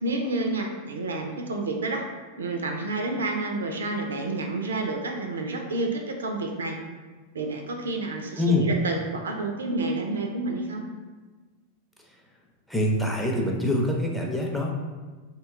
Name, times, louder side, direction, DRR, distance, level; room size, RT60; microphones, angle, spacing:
voice 1, 0.0-2.1 2.4-6.8 7.3-10.8, right 2 dB, 70° right, 3 dB, 0.4 m, -29 dB
voice 2, 8.4-8.7 12.7-14.7, left 1 dB, ahead, -1 dB, 0.5 m, -24 dB
2.8 x 2.2 x 3.5 m, 1.3 s
figure-of-eight pair, 90°, 0 cm